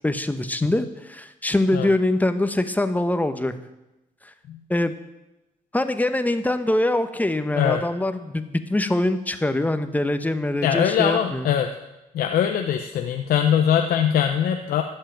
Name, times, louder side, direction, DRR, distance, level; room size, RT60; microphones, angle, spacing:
voice 1, 0.0-3.5 4.7-4.9 5.7-11.5, left 1 dB, 10° left, 10 dB, 1.0 m, -23 dB
voice 2, 10.6-11.7 12.1-14.8, left 9 dB, 80° left, 5 dB, 0.8 m, -22 dB
13.0 x 5.6 x 9.1 m, 0.96 s
cardioid pair, 80°, 15 cm